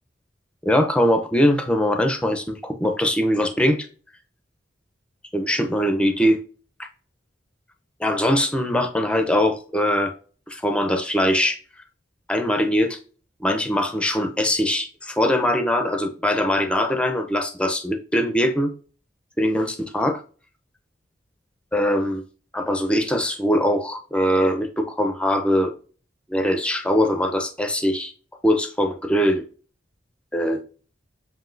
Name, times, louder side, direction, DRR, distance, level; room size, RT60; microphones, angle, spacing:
voice 1, 0.6-3.9 5.3-6.4 6.8-6.9 8.0-10.1 10.5-11.6 12.3-13.0 13.4-18.7 19.4-20.2 21.7-22.2 22.5-25.7 26.3-28.1 28.4-29.4 30.3-30.6, equal, 5° left, 5 dB, 0.5 m, -21 dB
7.5 x 2.7 x 2.5 m, 0.39 s
head